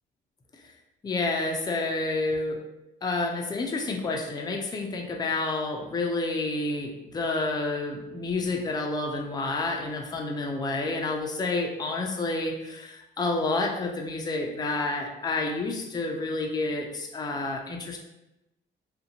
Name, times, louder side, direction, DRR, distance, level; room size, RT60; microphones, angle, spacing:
voice 1, 1.0-2.6 3.0-18.0, left 2 dB, 20° left, 1 dB, 0.4 m, -29 dB
2.6 x 2.1 x 2.7 m, 0.93 s
cardioid pair, 90°, 20 cm